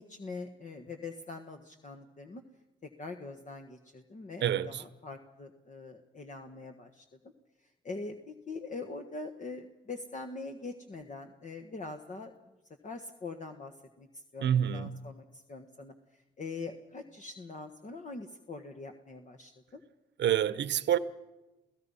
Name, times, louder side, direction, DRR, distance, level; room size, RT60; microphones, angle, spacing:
voice 1, 0.0-2.4 3.0-7.0 7.8-12.3 12.8-13.7 14.0-14.1 14.3-15.9 16.4-19.8, left 3 dB, 40° left, 1.6 m, -43 dB
voice 2, 4.4-4.8 14.4-15.0 20.2-21.0, right 10 dB, 60° right, 1.0 m, -27 dB
28.0 x 16.5 x 5.7 m
cardioid pair, 90°, 20 cm